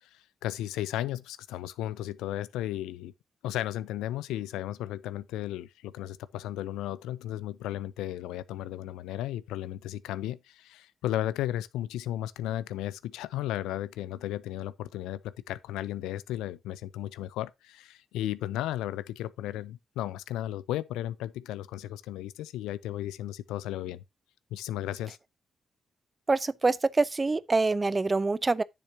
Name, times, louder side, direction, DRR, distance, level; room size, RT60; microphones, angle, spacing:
voice 1, 0.0-3.1 3.4-24.0 24.5-25.2, left 13 dB, 80° left, 0.5 m, -34 dB
voice 2, 26.3-28.6, right 3 dB, 35° right, 0.7 m, -25 dB
10.0 x 7.2 x 2.7 m
hypercardioid pair, 40°, 0 cm